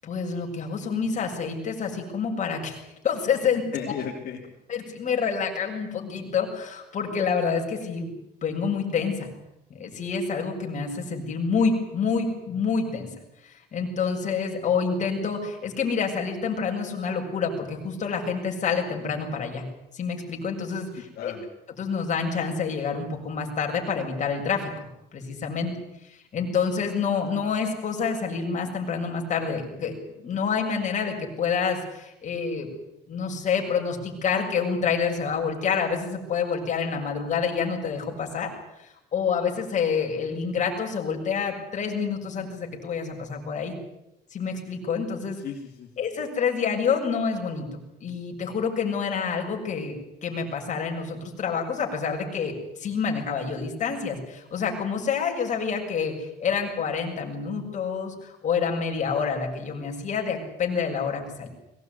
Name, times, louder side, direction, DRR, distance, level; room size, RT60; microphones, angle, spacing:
voice 1, 0.0-3.6 4.7-9.3 9.7-13.1 13.4-19.6 19.9-21.3 21.8-24.7 25.1-25.7 26.1-32.7 33.1-38.5 38.8-43.8 44.3-45.4 46.0-47.7 48.0-49.9 50.2-56.1 56.4-61.5, left 6 dB, 45° left, 2 dB, 7.2 m, -28 dB
voice 2, 3.4-4.4 20.9-21.5 45.4-45.9, left 8 dB, 65° left, -2 dB, 3.7 m, -36 dB
22.5 x 19.0 x 9.7 m, 0.87 s
cardioid pair, 110°, 17 cm